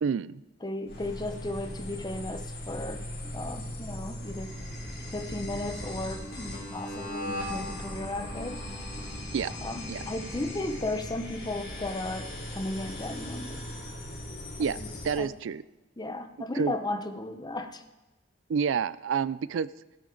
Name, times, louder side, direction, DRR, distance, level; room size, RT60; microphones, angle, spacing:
voice 1, 0.0-0.4 9.3-9.5 9.9-10.0 14.6-14.8 15.0-15.6 16.6-16.7 18.5-19.7, right 6 dB, 80° right, 18 dB, 0.4 m, -28 dB
voice 2, 0.6-3.1 3.3-4.6 5.1-8.6 9.5-13.6 14.8-15.3 16.0-17.8, left 2 dB, 20° left, 8 dB, 0.8 m, -35 dB
sound 1, 0.9-15.2, left 1 dB, 55° left, 3.5 m, -38 dB
17.0 x 9.0 x 3.9 m, 1.1 s
head